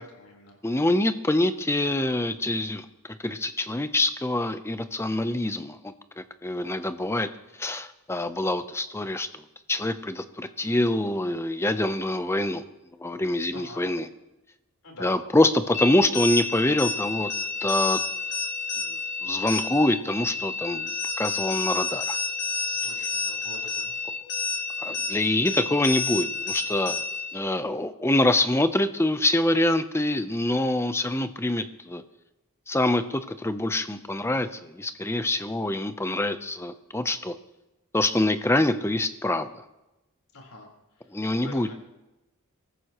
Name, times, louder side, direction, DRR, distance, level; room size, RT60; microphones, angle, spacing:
voice 1, 0.0-0.6 1.8-2.1 13.5-13.8 14.8-15.1 22.8-24.0 24.4-24.7 40.3-40.7 41.0-41.1 41.4-41.7, left 2 dB, 80° left, 0 dB, 4.1 m, -45 dB
voice 2, 0.6-2.9 3.2-7.3 7.6-9.4 9.7-12.6 13.0-14.1 15.0-17.3 17.6-18.0 19.2-20.9 21.2-22.2 24.8-27.0 27.3-32.0 32.7-37.3 37.9-39.5 41.1-41.7, left 1 dB, 10° left, 11 dB, 0.6 m, -25 dB
sound 1, 15.7-27.3, left 4 dB, 55° left, 2.5 m, -30 dB
23.5 x 14.0 x 3.0 m, 1.0 s
head